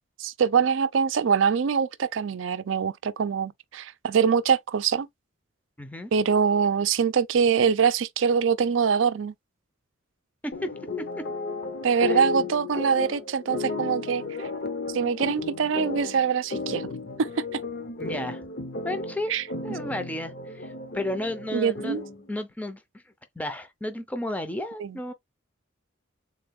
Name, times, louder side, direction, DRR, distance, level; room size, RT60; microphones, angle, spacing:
voice 1, 0.2-5.1 6.1-9.3 11.8-14.5 14.9-16.8 17.2-17.6 19.3-19.4 21.5-22.0 24.8-25.0, right 6 dB, 80° right, 0.4 m, -24 dB
voice 2, 5.8-6.1 10.4-11.3 11.9-12.2 18.0-18.4 18.8-19.3 19.6-22.0 22.3-22.8 23.4-25.1, left 1 dB, 10° left, 0.5 m, -33 dB
sound 1, 10.5-22.3, left 3 dB, 55° left, 0.7 m, -34 dB
3.8 x 2.3 x 3.5 m
head